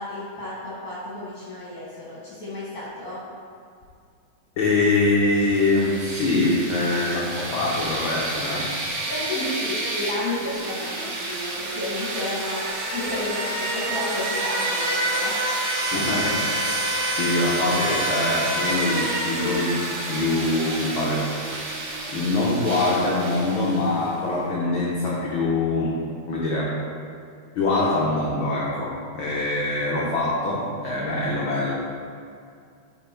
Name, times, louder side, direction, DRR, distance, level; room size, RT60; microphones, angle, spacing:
voice 1, 0.0-3.2 9.1-12.6 12.9-15.4, left 2 dB, 40° left, -7 dB, 1.4 m, -32 dB
voice 2, 4.6-8.7 15.9-25.9 26.3-26.8 27.5-31.7, left 2 dB, 85° left, -5 dB, 1.1 m, -24 dB
sound 1, 5.4-24.1, right 2 dB, 70° right, 2.5 m, -28 dB
9.4 x 4.4 x 4.4 m, 2.3 s
omnidirectional pair, 3.6 m